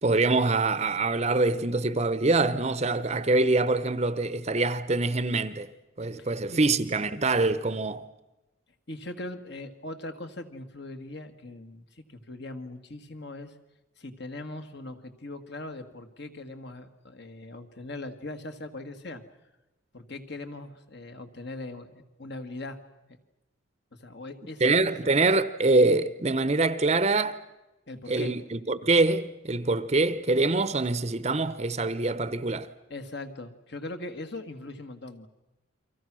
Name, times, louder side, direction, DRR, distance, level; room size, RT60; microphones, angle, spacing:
voice 1, 0.0-5.7 6.0-8.0 24.6-27.4 28.1-32.7, right 3 dB, 30° right, 0.8 m, -24 dB
voice 2, 6.2-6.7 8.9-13.6 14.0-19.2 19.9-22.8 24.0-24.9 27.9-28.3 32.9-35.3, left 2 dB, 55° left, 1.9 m, -40 dB
29.5 x 24.5 x 6.2 m
head